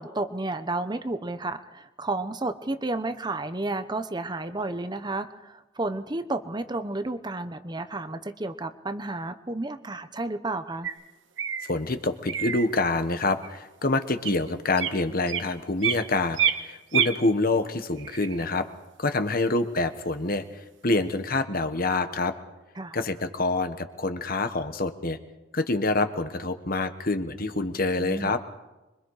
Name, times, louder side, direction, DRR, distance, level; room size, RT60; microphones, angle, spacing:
voice 1, 0.0-10.9 22.8-23.0 28.0-28.3, right 2 dB, 20° right, 10 dB, 0.8 m, -32 dB
sound 1, 10.8-11.0 11.4-11.7 12.3-12.7 13.4-13.6 14.2-14.3 14.8-15.0 15.3-16.1 16.4-17.2 18.0-18.7, right 8 dB, 70° right, 1.4 m, -27 dB
voice 2, 11.7-18.7 19.0-22.3 22.9-25.2 25.5-28.4, left 2 dB, 50° left, 9 dB, 1.4 m, -26 dB
26.0 x 23.5 x 4.9 m, 1.0 s
head